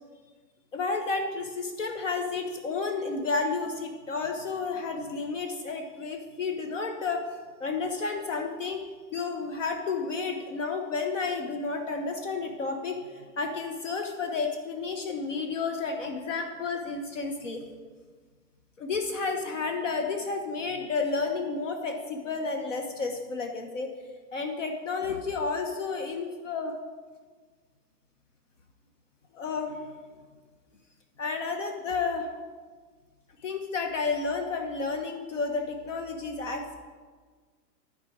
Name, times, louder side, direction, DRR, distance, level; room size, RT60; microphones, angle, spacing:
voice 1, 0.7-7.2 7.6-8.8 9.1-17.6 18.8-23.9 24.3-26.7 29.3-29.8 31.2-32.3 33.4-36.8, left 4 dB, 50° left, 4 dB, 1.1 m, -31 dB
13.0 x 4.9 x 8.5 m, 1.5 s
hypercardioid pair, 160°, 50 cm